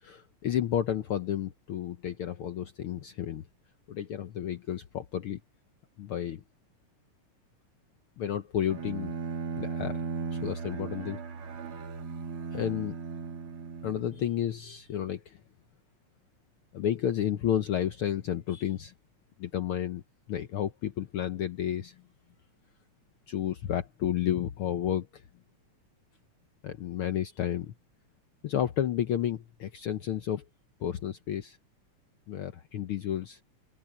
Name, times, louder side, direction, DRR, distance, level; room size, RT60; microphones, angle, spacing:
voice 1, 0.0-3.5 3.9-5.4 6.0-6.4 8.2-9.1 9.6-10.0 10.3-11.2 12.5-13.0 13.8-15.4 16.7-18.9 19.4-20.0 20.3-22.0 23.3-25.2 26.6-27.7 28.4-30.4 30.8-31.6 32.3-33.4, left 10 dB, 70° left, 1.3 m, -31 dB
Bowed string instrument, 8.7-14.5, right 5 dB, 50° right, 2.3 m, -37 dB
omnidirectional pair, 3.4 m